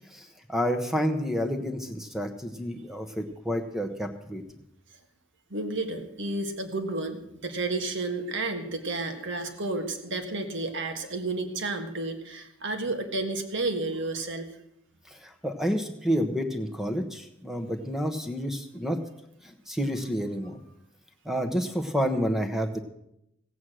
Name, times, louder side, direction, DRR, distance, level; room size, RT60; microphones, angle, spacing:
voice 1, 0.0-4.4 15.1-19.0 19.4-20.6 21.2-22.8, equal, ahead, 6 dB, 1.1 m, -29 dB
voice 2, 5.5-14.5, right 2 dB, 60° right, 6 dB, 1.6 m, -31 dB
16.0 x 8.4 x 6.3 m, 0.80 s
head